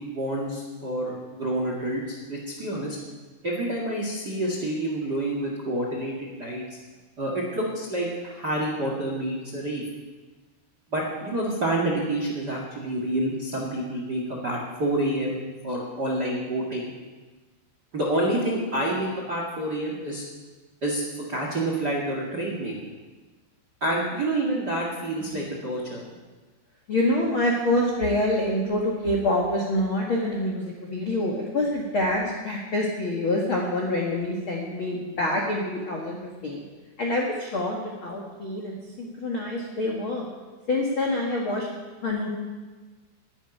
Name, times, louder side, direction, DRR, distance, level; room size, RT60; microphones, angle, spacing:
voice 1, 0.0-3.0 3.4-6.6 7.2-9.8 10.9-16.8 17.9-20.2 20.8-21.0 21.3-22.7 23.8-26.0, right 1 dB, 40° right, -2 dB, 1.4 m, -28 dB
voice 2, 26.9-36.7 37.0-40.2 40.7-41.7 42.0-42.3, left 1 dB, 85° left, -2 dB, 1.1 m, -26 dB
10.5 x 10.0 x 10.0 m, 1.3 s
omnidirectional pair, 5.4 m